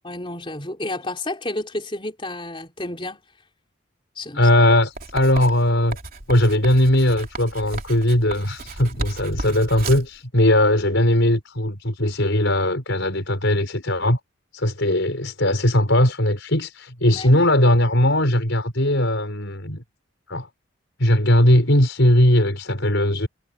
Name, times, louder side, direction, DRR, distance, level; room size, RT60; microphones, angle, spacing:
voice 1, 0.0-3.2 4.2-4.5 17.1-17.3, left 1 dB, 25° left, 3.8 m, -31 dB
voice 2, 4.3-6.0 6.3-14.2 14.5-19.8 20.3-20.5 21.0-23.3, left 1 dB, 70° left, 4.8 m, -19 dB
Writing, 5.0-10.2, right 2 dB, 45° right, 3.8 m, -34 dB
head